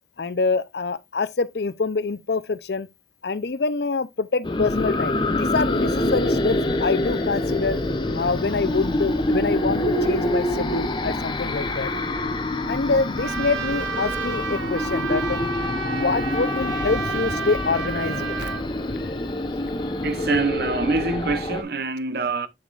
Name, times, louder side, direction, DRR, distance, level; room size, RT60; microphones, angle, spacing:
voice 1, 0.2-2.9 3.2-7.8 8.1-11.9 12.7-15.4 15.9-19.3 19.6-19.9, left 4 dB, 60° left, 0.6 m, -26 dB
sound 1, 4.4-21.6, left 1 dB, 25° left, 0.8 m, -26 dB
Trumpet, 13.2-18.6, right 4 dB, 85° right, 1.1 m, -31 dB
voice 2, 20.0-22.5, right 3 dB, 55° right, 0.8 m, -25 dB
7.8 x 6.9 x 2.5 m
head